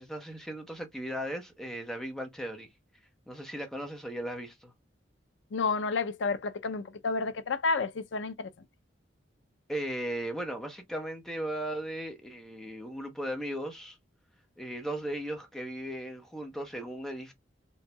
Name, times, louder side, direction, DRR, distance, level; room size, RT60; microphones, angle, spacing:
voice 1, 0.0-2.7 3.3-4.7 9.7-14.0 14.6-17.3, right 1 dB, ahead, 0.9 m, -37 dB
voice 2, 5.5-8.5, left 4 dB, 75° left, 0.5 m, -30 dB
4.2 x 2.7 x 2.2 m
head